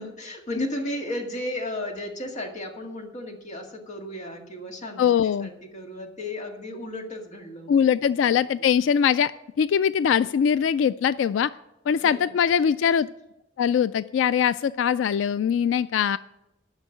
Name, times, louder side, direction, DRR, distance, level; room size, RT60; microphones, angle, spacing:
voice 1, 0.0-7.8 8.2-8.7 11.9-12.4, left 1 dB, 40° left, 2 dB, 2.0 m, -35 dB
voice 2, 5.0-5.5 7.7-9.3 9.6-11.5 11.9-13.1 13.6-16.2, left 8 dB, 90° left, 15 dB, 0.3 m, -22 dB
11.5 x 6.2 x 9.0 m, 0.91 s
head